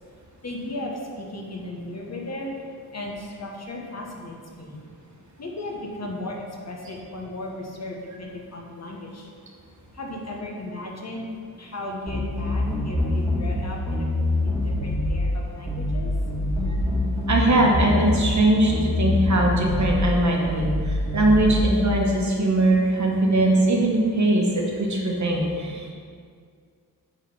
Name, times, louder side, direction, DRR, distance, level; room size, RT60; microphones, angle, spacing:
voice 1, 0.4-2.5 2.9-4.8 5.4-9.3 9.9-11.3 11.6-16.1, left 1 dB, 45° left, -1 dB, 1.2 m, -36 dB
sound 1, 12.1-13.6 13.9-15.1 15.7-16.0 16.3-18.4 18.7-19.9 20.5-20.8 21.1-21.7, left 1 dB, 5° left, 2.0 m, -25 dB
voice 2, 17.3-25.9, right 1 dB, 50° right, -1 dB, 1.3 m, -21 dB
8.7 x 4.0 x 5.5 m, 2.1 s
wide cardioid pair, 125°, 38 cm